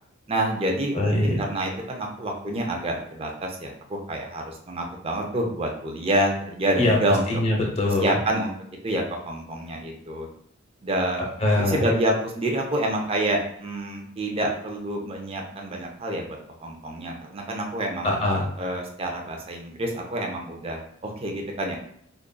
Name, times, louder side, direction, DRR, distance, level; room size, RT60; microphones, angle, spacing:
voice 1, 0.3-7.2 8.0-8.5 8.8-10.3 10.8-11.3 11.6-18.2 18.6-21.8, right 1 dB, 30° right, 1 dB, 0.5 m, -28 dB
voice 2, 0.9-1.4 6.8-7.0 7.3-8.1 11.4-11.9 18.0-18.5, left 2 dB, 30° left, -1 dB, 0.8 m, -22 dB
5.2 x 2.4 x 2.2 m, 0.70 s
head